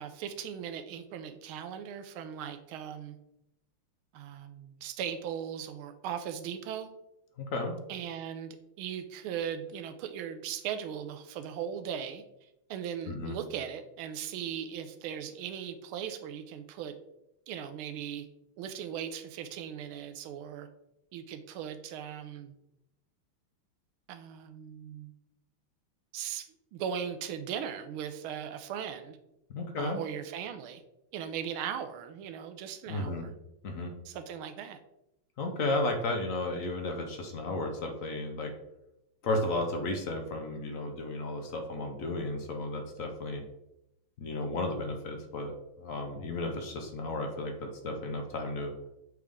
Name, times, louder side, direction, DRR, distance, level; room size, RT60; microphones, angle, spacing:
voice 1, 0.0-3.2 4.1-6.9 7.9-12.2 12.7-16.9 17.5-18.3 18.6-20.7 21.1-22.5 24.1-25.1 26.1-29.2 29.8-30.8 31.1-33.3 34.0-34.8, right 8 dB, 80° right, 9 dB, 1.4 m, -38 dB
voice 2, 7.4-7.7 13.1-13.4 29.5-30.0 32.9-33.3 33.6-33.9 35.4-38.5 39.2-43.4 44.2-45.5 45.8-48.7, left 2 dB, 60° left, 4 dB, 0.8 m, -33 dB
7.7 x 3.5 x 3.5 m, 0.87 s
omnidirectional pair, 2.3 m